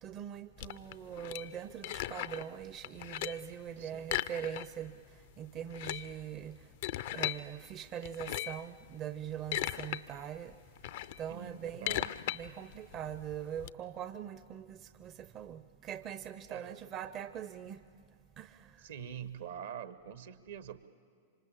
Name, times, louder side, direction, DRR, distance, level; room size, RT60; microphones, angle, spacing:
voice 1, 0.0-6.7 7.1-10.6 11.2-17.8 18.4-18.8, right 9 dB, 35° right, 12 dB, 0.7 m, -42 dB
sound 1, 0.6-2.5 2.8-3.5 4.0-4.9 5.2-5.3 5.6-7.4 8.0-8.7 9.2-10.0 10.4-13.7, left 13 dB, 55° left, 0.6 m, -37 dB
voice 2, 3.8-4.3 11.3-12.2 16.5-16.8 18.8-20.9, right 9 dB, 65° right, 14 dB, 1.1 m, -45 dB
26.0 x 25.5 x 7.2 m, 2.2 s
figure-of-eight pair, 95°, 0 cm